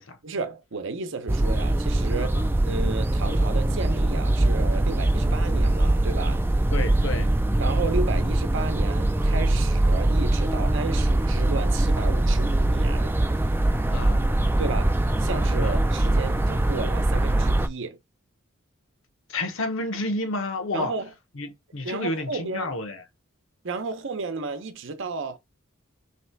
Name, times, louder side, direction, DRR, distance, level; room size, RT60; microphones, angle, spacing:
voice 1, 0.2-2.4 2.7-6.5 7.6-13.1 14.6-18.0 20.7-21.1 21.8-22.7 23.6-25.4, right 3 dB, 65° right, 0.8 m, -33 dB
sound 1, 1.3-17.7, right 1 dB, 10° right, 0.4 m, -22 dB
voice 2, 2.2-2.5 6.7-7.3 13.9-14.2 15.6-15.8 19.3-20.9 21.4-23.0, left 2 dB, 70° left, 1.0 m, -30 dB
3.3 x 3.1 x 4.5 m
head